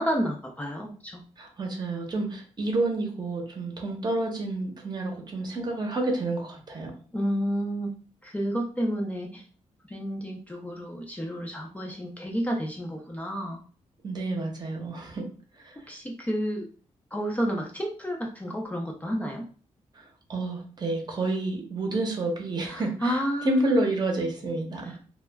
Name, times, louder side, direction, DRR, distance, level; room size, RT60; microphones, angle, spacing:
voice 1, 0.0-1.2 7.1-7.9 8.2-9.4 9.8-13.6 15.9-16.7 17.1-19.4 22.6-23.8 24.8-25.0, equal, 10° left, -1 dB, 0.4 m, -30 dB
voice 2, 1.4-6.9 14.0-15.3 15.6-15.7 20.0-20.1 20.3-25.0, right 2 dB, 35° right, 2 dB, 0.7 m, -29 dB
2.2 x 2.1 x 3.3 m, 0.40 s
cardioid pair, 110°, 12 cm